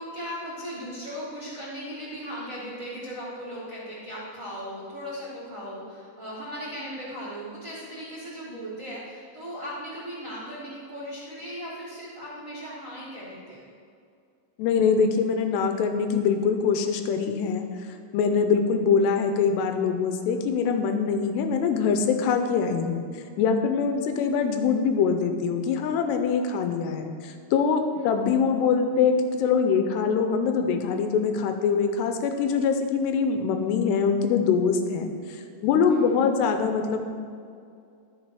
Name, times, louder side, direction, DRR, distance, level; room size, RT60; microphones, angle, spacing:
voice 1, 0.0-13.6 27.9-28.0 35.9-36.1, equal, 35° right, -9 dB, 1.3 m, -37 dB
voice 2, 14.6-17.7 18.1-23.0 23.4-37.0, left 6 dB, 80° left, 6 dB, 2.6 m, -23 dB
12.5 x 6.0 x 4.8 m, 2.4 s
omnidirectional pair, 5.1 m